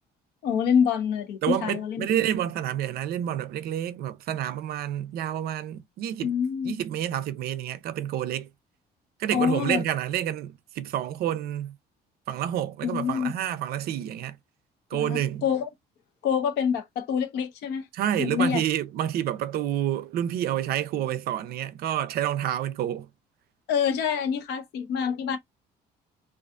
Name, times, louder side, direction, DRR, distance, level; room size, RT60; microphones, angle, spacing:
voice 1, 0.4-2.0 6.2-6.8 9.3-9.8 12.8-13.3 14.9-15.7 16.2-17.9 18.2-18.6 23.7-25.4, left 7 dB, 80° left, 0.8 m, -26 dB
voice 2, 1.4-6.3 6.6-8.5 9.2-11.7 12.3-14.4 14.9-15.4 17.9-23.1, right 11 dB, 65° right, 0.4 m, -29 dB
2.5 x 2.4 x 2.3 m
cardioid pair, 110°, 17 cm